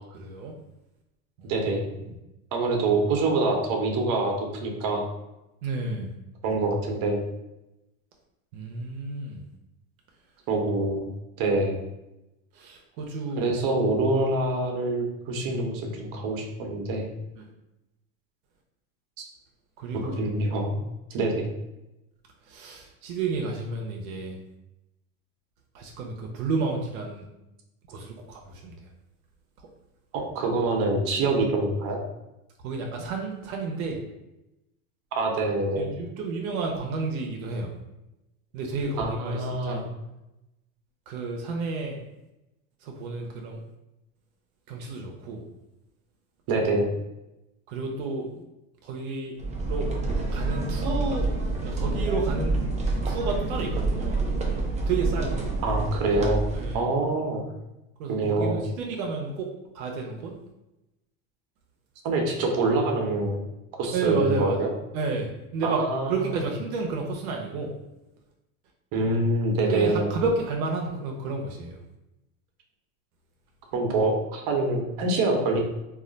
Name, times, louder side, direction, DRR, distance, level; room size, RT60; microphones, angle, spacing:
voice 1, 0.1-0.5 1.4-1.5 2.0-2.1 5.6-6.1 8.5-9.4 12.5-13.5 17.4-17.5 19.8-20.2 22.5-24.4 25.7-27.2 27.9-28.7 32.6-34.0 35.8-37.7 38.5-39.9 41.1-42.0 42.8-43.6 44.7-45.4 47.7-48.3 48.8-49.3 49.7-49.9 50.3-51.3 51.6-52.5 53.0-54.2 54.9-55.5 56.5-56.9 58.0-59.5 59.7-60.3 63.9-64.7 64.9-65.8 66.1-67.7 69.7-71.8, right 3 dB, 85° right, 1 dB, 0.6 m, -31 dB
voice 2, 1.4-1.9 2.5-5.0 6.4-7.2 10.5-11.1 11.4-11.8 13.4-17.1 19.2-19.3 20.0-20.7 21.1-21.5 30.1-32.0 35.1-35.9 39.0-39.9 46.5-46.9 55.6-56.4 56.7-57.5 58.1-58.6 62.0-63.4 63.8-64.7 65.6-66.4 68.9-70.1 73.7-75.6, right 2 dB, 55° right, 2 dB, 0.8 m, -25 dB
sound 1, 49.4-56.8, right 2 dB, 15° right, 0.5 m, -27 dB
2.3 x 2.1 x 3.8 m, 0.93 s
supercardioid pair, 110°, 41 cm